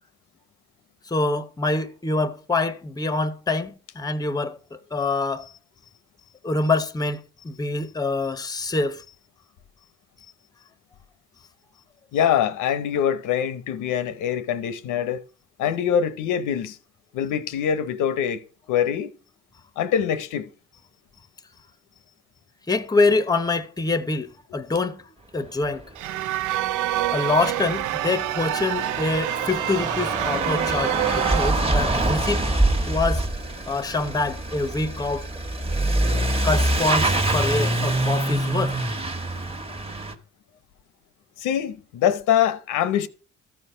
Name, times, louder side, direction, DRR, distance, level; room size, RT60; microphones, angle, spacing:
voice 1, 1.1-4.6 4.9-5.5 6.4-9.0 22.7-25.0 25.3-25.9 27.1-32.5 32.9-33.2 33.7-35.3 36.4-38.8, left 3 dB, 15° left, 0.7 m, -25 dB
voice 2, 12.1-15.2 15.6-16.8 17.1-18.4 18.7-19.1 19.8-20.5 41.4-43.1, left 9 dB, 90° left, 0.8 m, -24 dB
sound 1, 25.9-31.5, right 15 dB, 80° right, 0.5 m, -27 dB
Truck / Accelerating revving vroom, 26.5-26.6 26.7-40.1, right 2 dB, 20° right, 1.3 m, -25 dB
13.5 x 4.6 x 5.6 m
cardioid pair, 90°, 30 cm